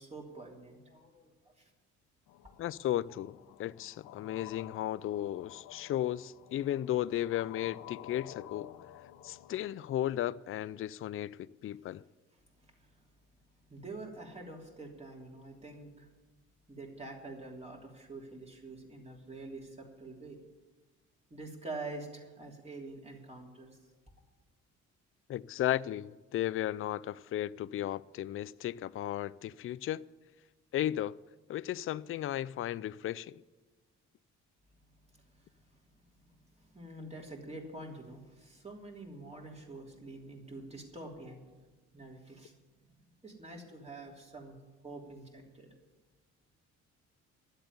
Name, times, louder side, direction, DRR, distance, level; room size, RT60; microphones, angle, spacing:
voice 1, 0.0-1.7 12.8-12.9 13.7-16.1 16.7-20.4 21.3-23.8 36.6-41.6 41.9-42.5 43.0-44.6 44.8-45.7, right 2 dB, 20° right, 3.2 m, -46 dB
sound 1, 2.3-9.7, left 12 dB, 85° left, 0.7 m, -51 dB
voice 2, 2.6-8.7 9.2-12.0 25.3-30.0 30.7-31.2 31.5-33.4, left 12 dB, 45° left, 0.4 m, -35 dB
11.5 x 7.8 x 9.6 m
cardioid pair, 90°, 30 cm